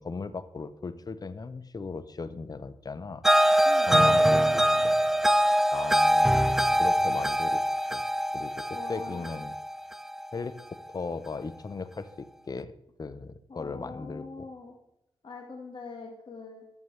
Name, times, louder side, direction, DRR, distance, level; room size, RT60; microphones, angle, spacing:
voice 1, 0.0-3.2 3.9-5.0 5.7-8.0 8.3-9.5 10.3-12.7 13.0-14.5, left 4 dB, 40° left, 14 dB, 0.7 m, -37 dB
sound 1, 3.2-10.4, equal, 5° right, 0.4 m, -23 dB
voice 2, 8.7-9.4 13.5-14.7 15.2-16.6, left 4 dB, 55° left, 1 dB, 1.6 m, -43 dB
12.5 x 7.2 x 3.3 m, 0.85 s
cardioid pair, 55°, 10 cm